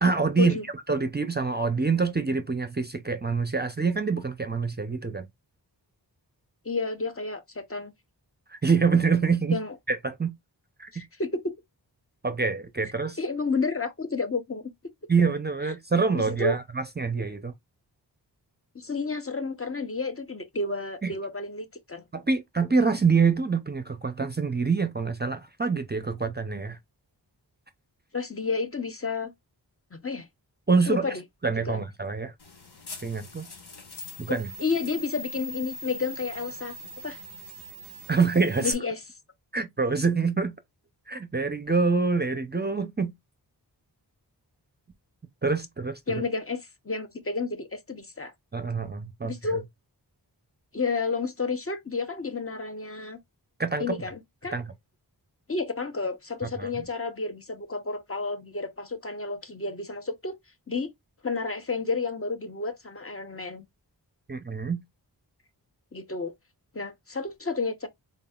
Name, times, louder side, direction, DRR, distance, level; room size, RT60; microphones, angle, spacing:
voice 1, 0.0-5.3 8.5-9.6 9.9-10.3 10.8-10.9 12.2-13.2 15.1-17.5 21.0-21.1 22.1-26.8 30.7-31.2 31.4-32.3 33.0-33.5 34.2-34.5 38.1-38.7 39.5-40.5 41.1-43.1 45.4-46.2 48.5-49.6 53.6-54.0 54.5-54.7 56.6-56.8 64.3-64.8, right 4 dB, 25° right, 0.5 m, -26 dB
voice 2, 6.6-7.9 9.5-9.7 10.9-11.4 13.2-14.6 16.1-16.6 18.7-22.0 28.1-29.3 29.9-30.3 30.9-31.2 31.7-31.8 34.3-36.8 37.0-37.2 38.6-39.0 46.1-48.3 49.2-49.6 50.7-53.2 53.8-54.5 55.5-60.4 60.7-60.9 61.2-63.7 65.9-66.3 66.7-67.9, left 4 dB, 35° left, 0.8 m, -31 dB
sound 1, 32.4-38.7, equal, 70° left, 1.5 m, -42 dB
3.9 x 3.7 x 2.3 m
wide cardioid pair, 75°, 41 cm